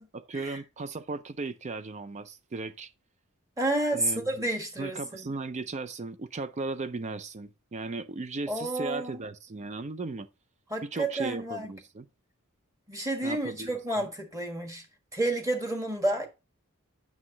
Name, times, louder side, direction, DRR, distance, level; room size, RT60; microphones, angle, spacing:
voice 1, 0.1-2.9 3.9-4.3 4.8-10.3 10.8-12.1 13.2-13.7 14.0-14.1, right 3 dB, 30° right, 0.4 m, -36 dB
voice 2, 3.6-5.3 8.5-9.2 10.7-11.7 12.9-14.8 15.1-16.3, right 1 dB, 15° right, 1.4 m, -30 dB
9.5 x 6.1 x 2.8 m
head